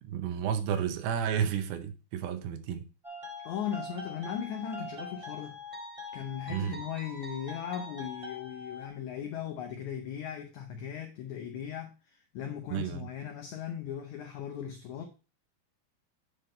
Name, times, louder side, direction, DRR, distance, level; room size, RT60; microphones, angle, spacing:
voice 1, 0.0-2.8 6.5-6.8 12.7-13.1, right 8 dB, 80° right, 2.7 m, -31 dB
sound 1, 3.0-8.9, left 2 dB, 25° right, 0.7 m, -43 dB
voice 2, 3.4-5.6 6.1-15.1, left 9 dB, 85° left, 1.6 m, -38 dB
9.8 x 3.8 x 4.3 m
omnidirectional pair, 4.5 m